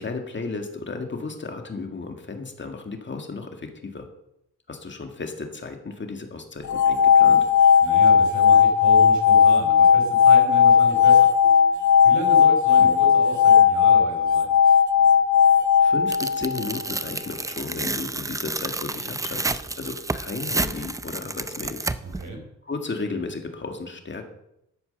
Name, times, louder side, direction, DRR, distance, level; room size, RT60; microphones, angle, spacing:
voice 1, 0.0-4.1 4.7-7.5 12.8-13.1 15.8-21.9 22.6-24.3, left 4 dB, 40° left, 5 dB, 2.0 m, -34 dB
sound 1, 6.6-16.8, left 7 dB, 70° left, 1.1 m, -16 dB
voice 2, 7.8-11.3 12.0-14.5 22.0-22.4, right 2 dB, 75° right, 2 dB, 4.7 m, -33 dB
Tearing, 16.1-22.2, right 2 dB, 10° right, 0.5 m, -30 dB
13.0 x 8.8 x 6.9 m, 0.82 s
wide cardioid pair, 125°, 30 cm